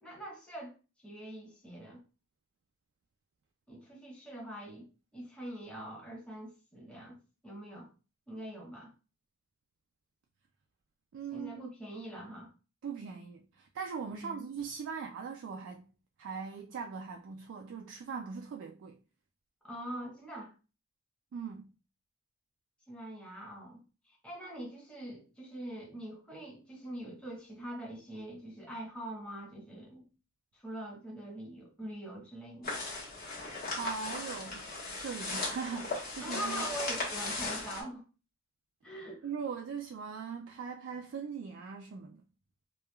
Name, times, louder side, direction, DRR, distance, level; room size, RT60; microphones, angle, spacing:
voice 1, 0.0-0.7 1.0-2.0 3.7-4.9 5.1-7.2 7.4-7.9 8.3-8.9 11.3-12.5 14.1-14.5 19.6-20.5 22.9-23.8 24.2-30.1 30.5-32.8 36.2-38.0 38.8-39.3, right 1 dB, 5° left, 0.9 m, -43 dB
voice 2, 11.1-11.7 12.8-15.9 16.2-19.0 21.3-21.7 33.8-36.7 39.2-42.2, right 6 dB, 65° right, 0.3 m, -40 dB
sound 1, 32.6-37.8, left 3 dB, 45° left, 1.2 m, -37 dB
3.0 x 2.2 x 2.2 m
head